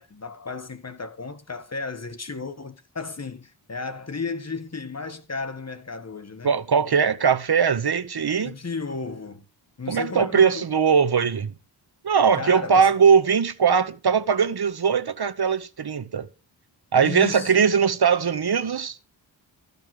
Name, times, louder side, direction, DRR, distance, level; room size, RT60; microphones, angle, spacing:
voice 1, 0.0-6.5 8.4-9.4 9.8-10.7 12.3-12.9 17.0-17.7, left 4 dB, 35° left, 1.3 m, -34 dB
voice 2, 6.4-8.5 9.9-11.5 12.0-16.3 16.9-19.0, right 6 dB, 55° right, 1.0 m, -20 dB
14.0 x 5.3 x 7.5 m
wide cardioid pair, 110°, 46 cm